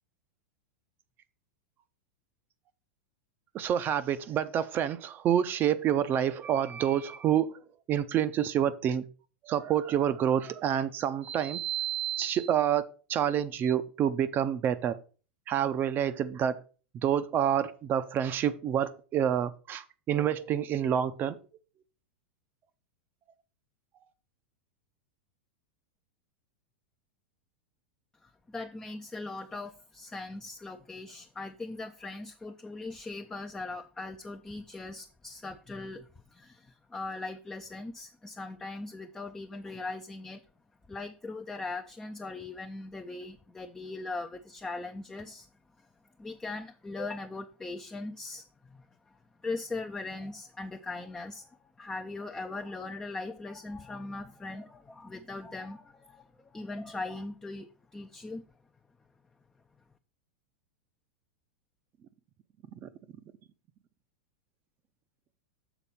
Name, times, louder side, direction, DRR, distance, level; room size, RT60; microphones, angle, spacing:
voice 1, 3.5-7.6 7.9-9.0 9.5-15.0 15.5-16.6 16.9-21.4 62.8-62.9, right 9 dB, 35° right, 0.6 m, -28 dB
voice 2, 28.2-40.4 40.9-45.5 45.8-45.9 46.2-58.4, left 3 dB, 10° left, 0.5 m, -40 dB
7.0 x 4.0 x 5.6 m
hypercardioid pair, 110°, 6 cm